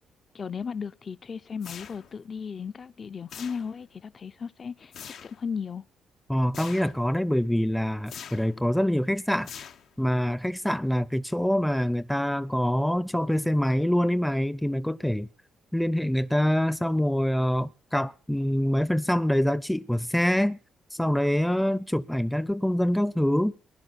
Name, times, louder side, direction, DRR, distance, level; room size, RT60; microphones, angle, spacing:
voice 1, 0.3-4.9 5.2-5.8, left 6 dB, 40° left, 0.6 m, -35 dB
sound 1, 1.6-2.3 3.3-4.0 4.9-5.4 6.5-7.1 8.1-8.6 9.4-10.1, left 8 dB, 70° left, 0.9 m, -43 dB
voice 2, 6.3-9.5 10.0-15.3 15.7-20.6 20.9-23.5, equal, 5° left, 0.6 m, -25 dB
19.5 x 11.0 x 4.1 m
cardioid pair, 90°, 0 cm